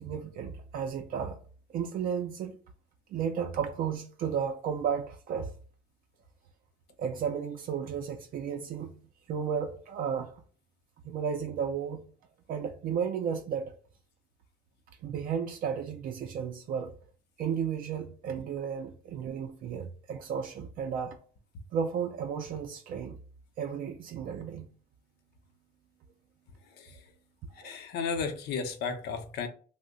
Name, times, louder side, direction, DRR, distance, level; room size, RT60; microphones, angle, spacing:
voice 1, 0.0-1.4 1.7-2.6 3.1-5.5 7.0-8.9 9.3-10.4 11.0-12.0 12.5-13.7 15.0-17.0 17.4-21.2 21.7-23.2 23.6-24.7 27.5-27.7, right 7 dB, 55° right, 0.4 m, -33 dB
voice 2, 27.6-29.5, left 5 dB, 75° left, 0.6 m, -34 dB
2.7 x 2.0 x 3.7 m
cardioid pair, 110°, 17 cm